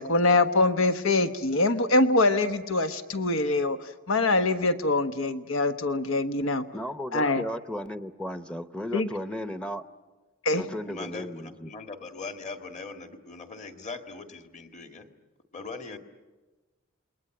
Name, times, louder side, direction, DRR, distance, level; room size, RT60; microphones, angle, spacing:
voice 1, 0.0-6.6 7.1-7.4 8.9-9.1 10.4-10.6, left 2 dB, 85° left, 9 dB, 1.3 m, -24 dB
voice 2, 6.7-9.8 10.6-11.7, left 1 dB, 5° left, 10 dB, 0.8 m, -35 dB
voice 3, 10.6-15.1 15.5-16.0, left 3 dB, 35° left, 6 dB, 1.8 m, -40 dB
28.5 x 21.0 x 9.1 m, 1.2 s
head